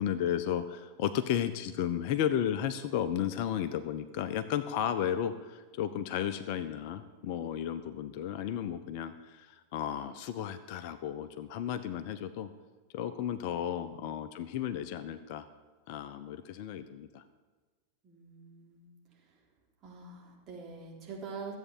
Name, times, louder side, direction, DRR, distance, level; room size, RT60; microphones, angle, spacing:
voice 1, 0.0-12.5 12.9-15.5 15.9-17.2, left 9 dB, 45° left, 11 dB, 0.7 m, -33 dB
voice 2, 18.0-19.4 19.8-21.6, right 4 dB, 30° right, -2 dB, 3.9 m, -46 dB
14.0 x 8.3 x 7.5 m, 1.3 s
figure-of-eight pair, 90°, 0 cm